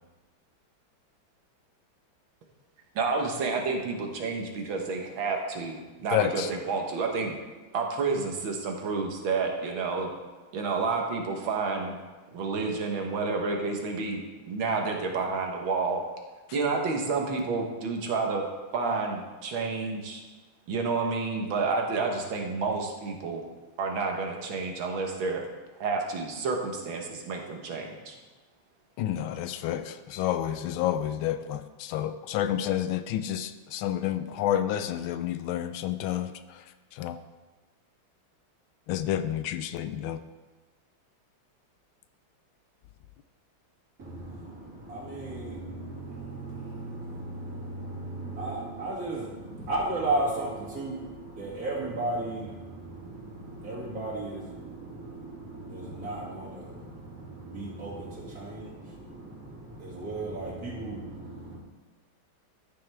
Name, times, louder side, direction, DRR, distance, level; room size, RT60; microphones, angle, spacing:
voice 1, 2.9-7.3 7.7-10.1 10.5-12.0 12.3-16.0 16.5-18.4 18.7-20.2 20.7-23.4 23.8-25.4 25.8-28.1, right 4 dB, 75° right, 2 dB, 1.9 m, -30 dB
voice 2, 6.1-6.5 29.0-37.2 38.9-40.2, left 11 dB, 80° left, 11 dB, 1.4 m, -30 dB
voice 3, 44.0-61.6, right 2 dB, 45° right, -4 dB, 2.7 m, -35 dB
13.5 x 6.9 x 3.4 m, 1.2 s
omnidirectional pair, 2.2 m